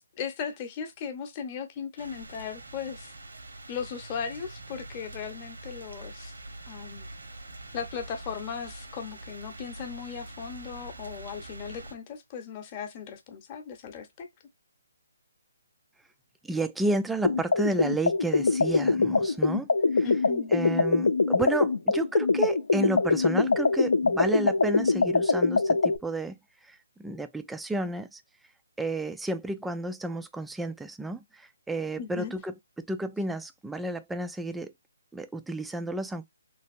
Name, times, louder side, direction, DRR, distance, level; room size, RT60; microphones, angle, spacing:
voice 1, 0.0-3.1 3.7-6.3 6.7-7.1 7.7-14.3 20.0-20.6 32.0-32.3, left 7 dB, 25° left, 0.8 m, -37 dB
sound 1, 2.0-11.9, right 2 dB, 85° right, 1.1 m, -44 dB
voice 2, 16.4-20.1 20.5-26.4 26.6-28.2 28.8-34.7 35.1-36.3, right 2 dB, 5° right, 0.3 m, -32 dB
sound 2, 17.2-26.0, left 3 dB, 80° left, 0.6 m, -23 dB
3.3 x 2.9 x 2.5 m
hypercardioid pair, 155°, 0 cm